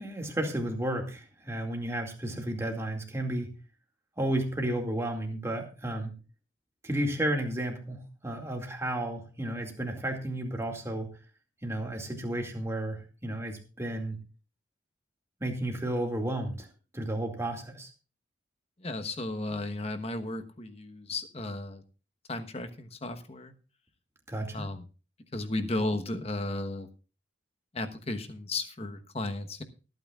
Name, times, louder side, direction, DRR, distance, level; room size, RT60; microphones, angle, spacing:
voice 1, 0.0-3.5 4.2-6.1 6.8-11.1 11.6-14.2 15.4-16.7 16.9-17.9 24.3-24.7, right 1 dB, 15° right, 2 dB, 2.2 m, -32 dB
voice 2, 18.8-21.8 22.3-23.5 24.5-24.8 25.3-26.9 27.7-29.6, left 2 dB, 30° left, 7 dB, 1.2 m, -34 dB
24.5 x 9.1 x 2.4 m, 0.33 s
head